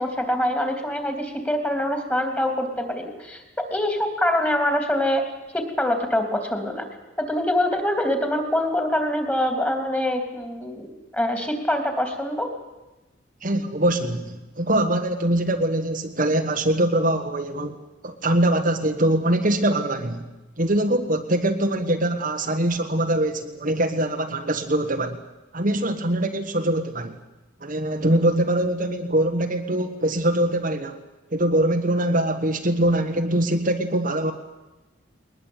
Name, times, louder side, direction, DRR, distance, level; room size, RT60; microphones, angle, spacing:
voice 1, 0.0-3.4 3.7-5.2 5.5-6.9 7.2-12.5, left 1 dB, 10° left, 6 dB, 3.3 m, -24 dB
voice 2, 13.4-17.8 18.0-20.3 20.6-25.2 25.5-27.2 27.6-31.0 31.3-34.3, right 1 dB, 40° right, 5 dB, 1.5 m, -23 dB
21.5 x 20.5 x 9.0 m, 1.1 s
head